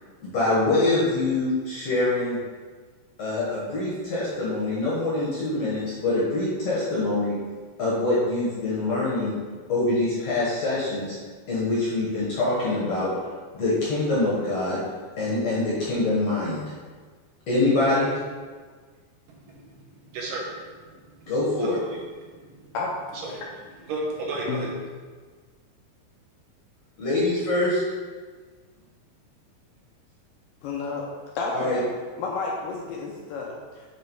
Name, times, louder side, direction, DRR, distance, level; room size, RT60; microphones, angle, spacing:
voice 1, 0.2-2.4 3.2-7.4 7.8-9.4 9.7-11.2 11.5-13.1 13.5-14.8 15.2-16.6 17.5-18.2 21.3-21.8 27.0-27.8 31.5-31.8, left 2 dB, 60° left, -8 dB, 1.7 m, -24 dB
voice 2, 19.3-21.3 21.6-22.8 23.1-23.5 23.9-24.7, right 2 dB, 75° right, -2 dB, 2.2 m, -35 dB
voice 3, 30.6-31.0 31.4-31.8 32.2-33.8, left 4 dB, 80° left, -2 dB, 2.1 m, -31 dB
7.5 x 3.0 x 4.5 m, 1.5 s
omnidirectional pair, 4.3 m